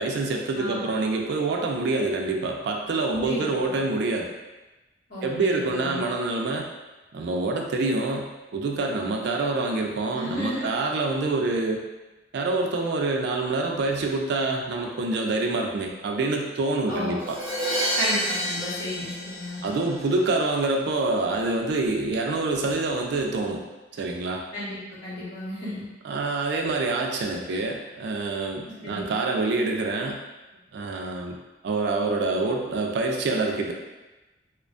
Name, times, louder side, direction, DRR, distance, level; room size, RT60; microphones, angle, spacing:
voice 1, 0.0-4.3 5.2-6.7 7.1-11.8 12.3-17.4 19.6-23.6 23.9-24.4 26.0-30.2 30.7-31.4 31.6-33.7, right 3 dB, 65° right, 1 dB, 0.4 m, -26 dB
voice 2, 0.5-0.9 3.2-3.5 5.1-6.0 10.1-10.7 16.9-17.2 18.0-19.6 24.5-25.8 28.8-29.0, left 1 dB, 65° left, -11 dB, 1.3 m, -32 dB
Crash cymbal, 17.2-20.1, right 1 dB, 10° left, 0.6 m, -29 dB
2.4 x 2.1 x 2.4 m, 1.1 s
head